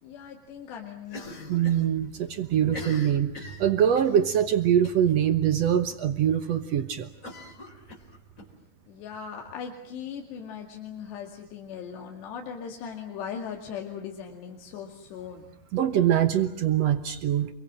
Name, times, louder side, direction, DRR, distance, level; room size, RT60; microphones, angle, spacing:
voice 1, 0.0-1.4 8.9-15.5, left 7 dB, 85° left, 2 dB, 4.4 m, -39 dB
Cough, 1.1-1.9 2.1-2.2 2.6-4.2 4.8-5.1 5.4-5.5 5.9-6.0 7.2-8.5, left 1 dB, 20° left, 4.3 m, -42 dB
voice 2, 1.5-7.1 15.7-17.5, right 10 dB, 85° right, 10 dB, 1.4 m, -23 dB
28.5 x 24.0 x 7.5 m, 0.72 s
omnidirectional pair, 4.8 m